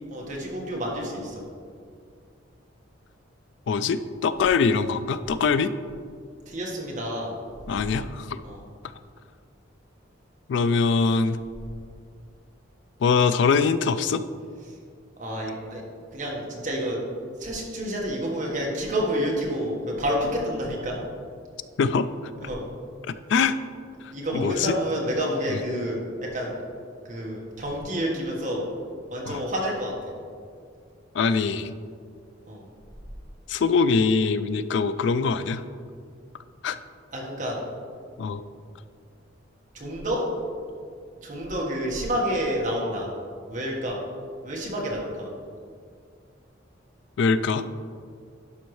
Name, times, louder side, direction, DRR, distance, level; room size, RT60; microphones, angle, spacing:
voice 1, 0.0-1.4 6.5-7.3 8.4-8.6 15.2-15.8 16.1-17.0 17.4-21.0 22.4-22.6 24.1-26.0 26.3-26.5 27.1-28.7 29.1-29.9 32.5-32.6 37.1-37.6 39.7-40.2 41.2-43.1 43.5-44.0 44.4-45.3, equal, 40° right, -2 dB, 1.4 m, -29 dB
voice 2, 3.7-5.7 7.7-8.4 10.5-11.4 13.0-14.2 21.8-22.1 23.3-23.6 24.3-24.7 25.5-25.6 29.2-29.4 31.1-31.7 33.5-35.6 36.6-36.8 38.2-38.4 47.2-47.6, left 5 dB, 65° left, 13 dB, 0.3 m, -23 dB
11.0 x 5.4 x 3.2 m, 2.2 s
head